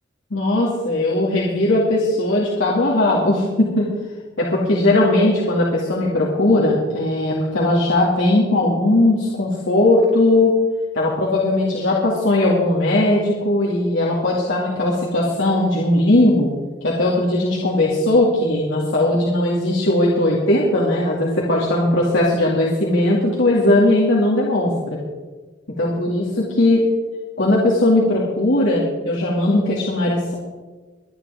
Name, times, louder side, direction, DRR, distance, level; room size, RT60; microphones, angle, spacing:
voice 1, 0.3-3.9 4.4-10.6 10.9-16.5 16.8-25.0 25.8-26.8 27.4-30.3, left 1 dB, 75° left, -5 dB, 2.4 m, -18 dB
23.5 x 10.0 x 3.6 m, 1.3 s
head